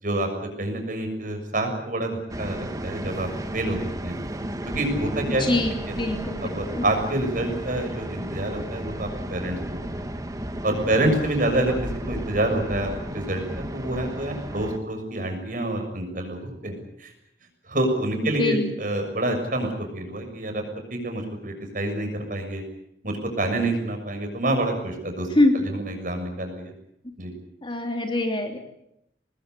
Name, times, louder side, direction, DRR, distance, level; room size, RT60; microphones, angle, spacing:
voice 1, 0.0-4.2 4.7-5.5 5.9-6.0 6.4-10.1 10.6-11.8 12.1-17.1 17.7-20.6 20.9-22.6 23.0-25.3 25.5-26.7 27.2-27.3, right 1 dB, 50° right, 5 dB, 6.7 m, -27 dB
sound 1, 2.3-14.8, right 1 dB, 20° right, 1.6 m, -33 dB
voice 2, 5.3-6.4 6.7-6.8 18.4-18.7 25.3-25.6 27.6-28.6, left 2 dB, 30° left, 4 dB, 3.1 m, -23 dB
25.0 x 20.0 x 8.3 m, 0.77 s
head